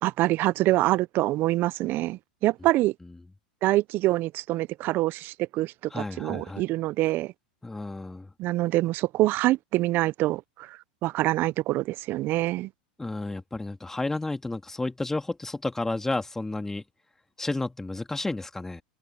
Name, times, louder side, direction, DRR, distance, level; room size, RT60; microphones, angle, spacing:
voice 1, 0.0-2.9 3.6-7.3 8.4-12.7, right 17 dB, 45° right, 0.7 m, -25 dB
voice 2, 5.9-6.6 7.6-8.3 13.0-16.8 17.4-18.8, left 2 dB, 10° left, 2.5 m, -31 dB
hypercardioid pair, 100°, 5 cm